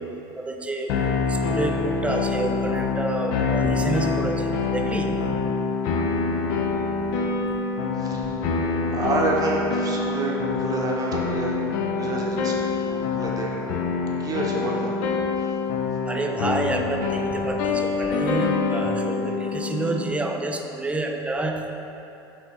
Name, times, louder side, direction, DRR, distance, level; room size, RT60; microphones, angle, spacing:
voice 1, 0.0-5.3 16.1-21.7, right 2 dB, 10° right, 3 dB, 0.4 m, -29 dB
sound 1, 0.9-20.1, left 4 dB, 70° left, 0.4 m, -26 dB
voice 2, 8.0-8.5 8.9-11.7 12.0-13.7 14.2-14.9, right 2 dB, 35° right, -2 dB, 0.7 m, -29 dB
4.4 x 2.7 x 4.2 m, 2.8 s
hypercardioid pair, 90°, 11 cm